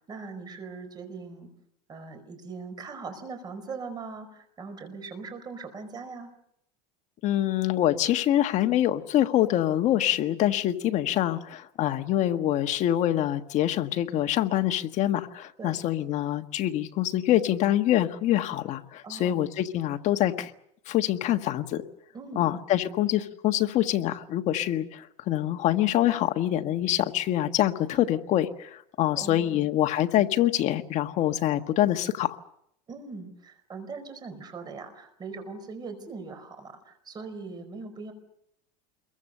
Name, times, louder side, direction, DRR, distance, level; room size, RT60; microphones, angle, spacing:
voice 1, 0.1-1.5 1.9-6.3 15.6-15.8 19.0-19.4 22.1-22.5 29.1-29.7 32.9-38.1, right 4 dB, 20° right, 8 dB, 4.9 m, -40 dB
voice 2, 7.2-20.5 20.9-21.8 22.3-32.4, left 12 dB, 35° left, 8 dB, 1.4 m, -25 dB
27.5 x 23.0 x 6.7 m, 0.74 s
supercardioid pair, 160°, 21 cm